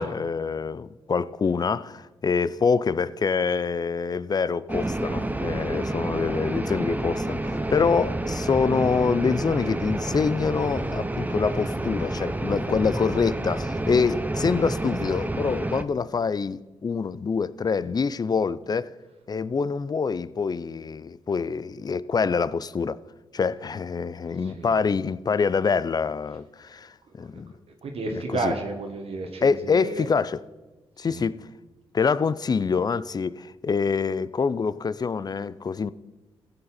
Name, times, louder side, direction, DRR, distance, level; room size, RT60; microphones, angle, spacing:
voice 1, 0.0-18.9 19.3-23.0 23.3-27.5 28.4-28.5 29.4-30.4 31.0-31.5 31.9-35.9, left 5 dB, 40° left, 0.4 m, -25 dB
sound 1, 4.7-15.8, right 1 dB, 15° right, 0.7 m, -29 dB
voice 2, 24.4-24.8 27.0-27.4 27.8-30.1 31.0-31.2, right 3 dB, 65° right, 1.4 m, -32 dB
15.5 x 6.8 x 4.3 m
cardioid pair, 60°, 11 cm